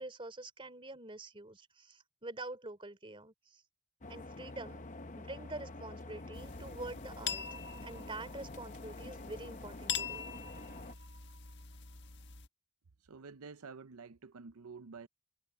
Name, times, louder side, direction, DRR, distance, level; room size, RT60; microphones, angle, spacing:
voice 1, 0.0-3.6 4.1-4.8 5.1-7.4 7.8-10.3, right 2 dB, 25° right, 3.3 m, -46 dB
sound 1, 4.0-10.9, left 2 dB, 35° left, 0.9 m, -48 dB
sound 2, 6.3-12.5, left 7 dB, 55° left, 1.5 m, -43 dB
voice 2, 13.1-15.1, right 5 dB, 85° right, 0.7 m, -49 dB
head